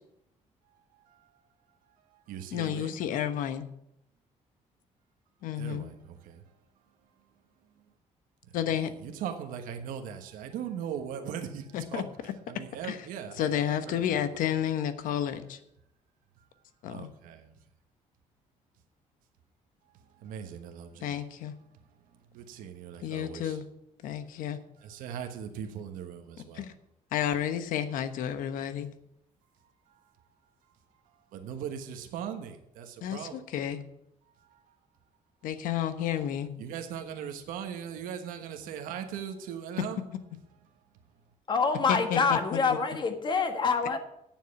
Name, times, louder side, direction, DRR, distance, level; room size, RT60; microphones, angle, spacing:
voice 1, 0.9-1.3 2.1-3.0 5.4-6.4 8.5-8.6 8.9-12.0 12.5-14.2 16.9-17.6 20.0-21.1 22.3-23.6 24.8-26.6 29.6-30.1 31.3-33.4 34.4-34.7 36.6-40.0, right 8 dB, 90° right, 1.3 m, -40 dB
voice 2, 2.5-3.6 5.4-5.9 8.5-8.9 11.7-12.0 12.9-13.0 13.4-15.6 16.8-17.1 21.0-21.5 23.0-23.6 24.0-24.6 26.5-26.7 27.1-28.9 33.0-33.8 35.4-36.5 41.9-42.4 42.7-42.8, left 10 dB, 80° left, 1.1 m, -31 dB
voice 3, 41.5-44.0, left 5 dB, 35° left, 1.6 m, -26 dB
9.1 x 7.5 x 7.6 m
cardioid pair, 125°, 14 cm